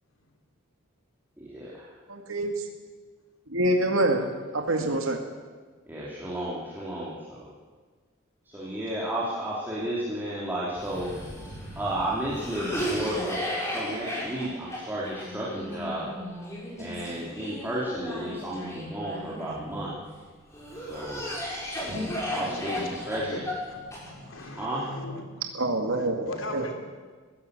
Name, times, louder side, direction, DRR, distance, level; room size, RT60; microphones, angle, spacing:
voice 1, 2.1-2.7 3.5-4.3 4.5-5.2 25.5-26.7, right 1 dB, 75° right, 3 dB, 2.2 m, -26 dB
voice 2, 5.9-7.1 8.5-11.1 11.8-13.4 13.7-16.0 16.8-19.9 20.9-21.2 22.3-22.7 23.1-23.2 24.6-24.8, right 1 dB, 10° right, -7 dB, 3.2 m, -32 dB
voice 3, 8.5-9.1 11.9-12.0 17.0-17.5 19.5-19.6 20.7-21.6 22.4-23.4 24.0-25.3 26.0-26.7, left 1 dB, 70° left, 3 dB, 3.4 m, -41 dB
Cough, 10.7-19.9 20.5-24.5, equal, 15° left, 6.4 m, -35 dB
20.5 x 16.0 x 8.2 m, 1.5 s
head